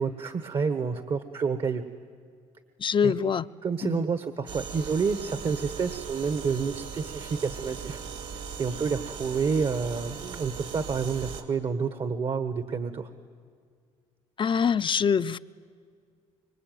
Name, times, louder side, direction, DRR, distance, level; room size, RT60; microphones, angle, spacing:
voice 1, 0.0-1.8 3.0-3.1 3.6-8.0 8.6-13.1, right 5 dB, 45° right, 9 dB, 1.4 m, -29 dB
voice 2, 2.8-3.4 3.8-4.1 14.4-15.4, left 7 dB, 40° left, 14 dB, 0.7 m, -24 dB
sound 1, 4.5-11.4, right 6 dB, 65° right, 3.0 m, -39 dB
25.5 x 23.5 x 9.3 m, 2.1 s
supercardioid pair, 80°, 13 cm